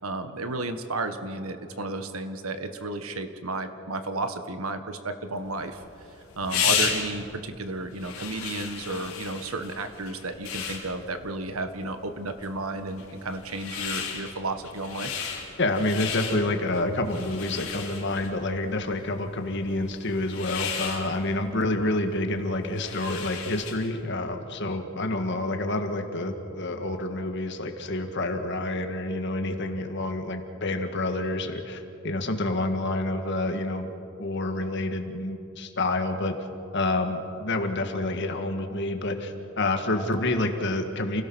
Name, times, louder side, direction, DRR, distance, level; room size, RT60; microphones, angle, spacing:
voice 1, 0.0-5.8 6.4-15.1, right 2 dB, 85° right, 8 dB, 1.6 m, -33 dB
sound 1, 5.4-24.0, left 7 dB, 80° left, 4.1 m, -34 dB
voice 2, 15.6-33.9 34.2-36.4 36.7-41.2, left 2 dB, 55° left, 5 dB, 1.9 m, -28 dB
29.0 x 17.0 x 6.3 m, 2.7 s
head